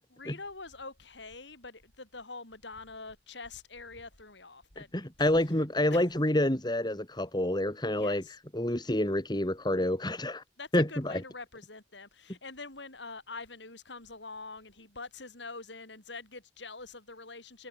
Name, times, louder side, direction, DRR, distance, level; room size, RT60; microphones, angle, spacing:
voice 1, 0.2-5.3 5.9-6.1 7.9-8.3 10.6-17.7, left 3 dB, 75° left, 7.0 m, -45 dB
voice 2, 4.8-8.2 8.5-10.4 10.7-10.8, left 1 dB, 25° left, 2.8 m, -28 dB
head